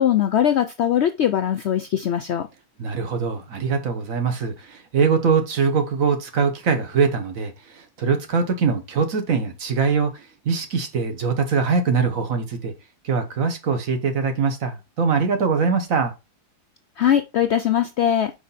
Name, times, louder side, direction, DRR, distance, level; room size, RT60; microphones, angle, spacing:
voice 1, 0.0-2.5 17.0-18.3, left 10 dB, 70° left, 0.6 m, -21 dB
voice 2, 2.8-12.7 13.0-16.1, right 5 dB, 60° right, 1.5 m, -22 dB
5.0 x 4.9 x 4.0 m
omnidirectional pair, 1.6 m